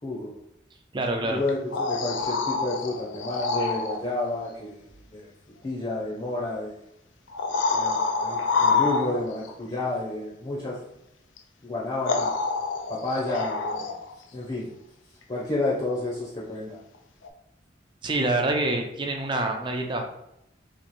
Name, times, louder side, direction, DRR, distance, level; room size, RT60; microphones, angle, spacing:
voice 1, 0.0-0.3 1.2-5.3 5.6-6.8 7.7-10.8 11.6-12.3 12.9-14.0 14.3-14.7 15.3-16.8, left 2 dB, 30° left, -5 dB, 0.8 m, -30 dB
voice 2, 0.9-1.4 18.0-20.0, right 2 dB, 25° right, 3 dB, 0.5 m, -26 dB
sound 1, 1.5-4.0 5.9-6.0 7.3-9.5 11.4-11.5 12.0-14.2 17.2-17.3, left 4 dB, 80° left, 0.5 m, -27 dB
3.0 x 2.5 x 4.1 m, 0.83 s
head